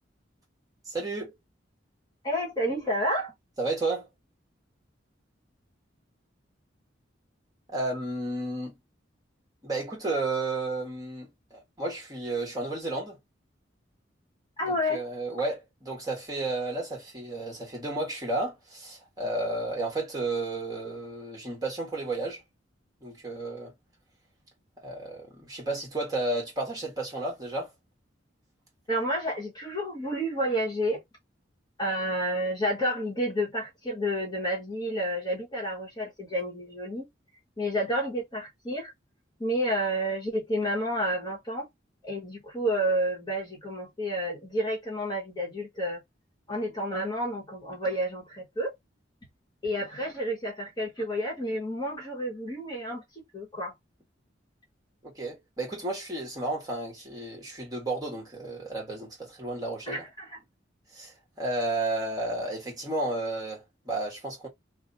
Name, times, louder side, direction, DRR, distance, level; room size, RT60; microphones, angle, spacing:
voice 1, 0.9-1.3 3.6-4.1 7.7-8.7 9.6-13.2 14.9-22.4 23.0-23.7 24.8-27.7 55.0-60.0 60.9-64.5, right 2 dB, 20° right, 1.6 m, -32 dB
voice 2, 2.2-3.3 14.6-15.0 28.9-31.0 31.8-37.1 37.6-38.9 39.4-41.7 42.0-46.0 46.5-48.7 49.6-53.0 53.3-53.7 59.9-60.4, equal, 20° left, 1.1 m, -30 dB
3.0 x 2.2 x 3.9 m
head